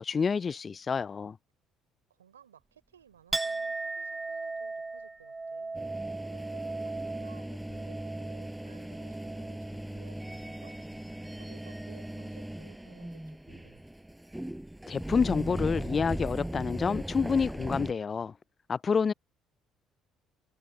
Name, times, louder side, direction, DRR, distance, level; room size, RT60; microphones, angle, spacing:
voice 1, 0.0-1.4 14.9-18.3 18.7-19.1, left 5 dB, 35° left, 0.5 m, -28 dB
voice 2, 2.1-5.9 6.3-10.7 11.4-13.8, right 9 dB, 90° right, 3.8 m, -58 dB
Chink clink, 3.3-11.0 11.3-12.0, right 3 dB, 20° right, 1.5 m, -38 dB
sound 1, 5.7-17.9, right 1 dB, 5° right, 5.5 m, -38 dB
hypercardioid pair, 55°, 0 cm